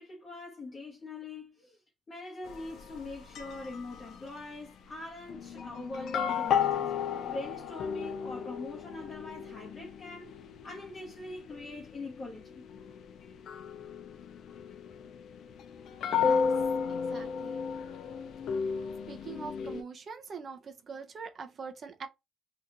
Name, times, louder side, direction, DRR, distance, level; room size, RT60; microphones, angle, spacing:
voice 1, 0.0-1.8 2.1-6.9 7.2-10.3 10.6-12.7, left 2 dB, 30° left, 1.0 m, -42 dB
sound 1, 2.5-4.4 5.3-19.8, left 7 dB, 60° left, 0.5 m, -34 dB
voice 2, 16.1-16.5 16.9-17.6 18.5-18.7 19.1-22.1, right 5 dB, 40° right, 0.7 m, -43 dB
2.8 x 2.5 x 3.7 m
cardioid pair, 140°, 0 cm